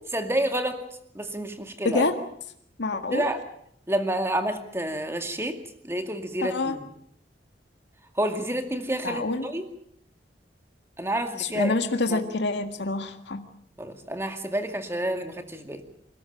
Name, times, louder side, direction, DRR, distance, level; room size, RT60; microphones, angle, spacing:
voice 1, 0.1-0.8 1.1-2.0 3.1-3.4 3.9-5.6 5.8-6.9 8.2-9.7 11.0-11.7 12.1-12.2 13.8-15.8, right 1 dB, 15° right, 6 dB, 2.2 m, -29 dB
voice 2, 2.8-3.3 6.4-6.8 9.0-9.5 11.4-13.4, left 3 dB, 70° left, 6 dB, 1.8 m, -26 dB
27.5 x 13.5 x 9.0 m, 0.70 s
head